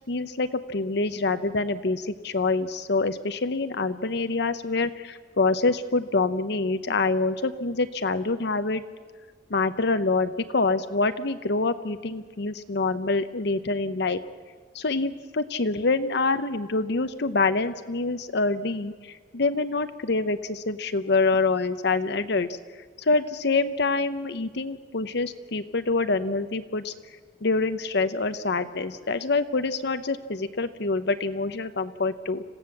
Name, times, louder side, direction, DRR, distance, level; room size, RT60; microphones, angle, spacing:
voice 1, 0.1-8.8 9.5-14.2 14.7-22.5 23.0-26.9 27.4-32.4, left 3 dB, 65° left, 11 dB, 0.9 m, -26 dB
26.5 x 16.0 x 7.3 m, 1.5 s
head